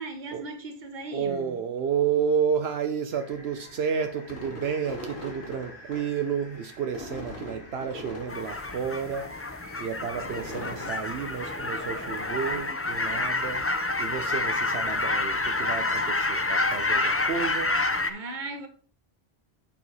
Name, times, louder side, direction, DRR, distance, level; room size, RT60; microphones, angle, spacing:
voice 1, 0.0-1.6 18.1-18.7, right 3 dB, 50° right, 1.3 m, -37 dB
voice 2, 1.1-9.3 9.8-13.7 14.0-17.7, right 7 dB, 80° right, 1.0 m, -31 dB
sound 1, 3.1-12.9, left 1 dB, 90° left, 2.7 m, -43 dB
sound 2, 8.3-18.1, left 2 dB, 20° left, 0.5 m, -28 dB
9.0 x 4.7 x 4.1 m
omnidirectional pair, 1.1 m